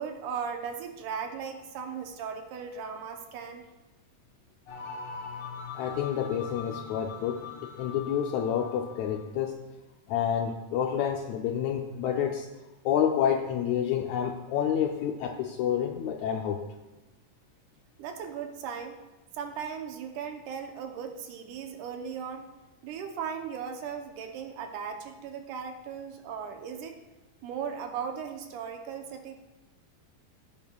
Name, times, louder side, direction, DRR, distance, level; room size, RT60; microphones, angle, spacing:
voice 1, 0.0-3.7 18.0-19.0 19.3-22.5 22.8-27.0 27.4-29.3, right 7 dB, 75° right, 4 dB, 2.2 m, -37 dB
sound 1, 4.7-9.3, left 6 dB, 50° left, 2.1 m, -42 dB
voice 2, 5.7-9.6 10.1-12.5 12.8-16.6, left 9 dB, 80° left, 3 dB, 1.7 m, -29 dB
16.0 x 8.5 x 2.3 m, 1.1 s
omnidirectional pair, 3.8 m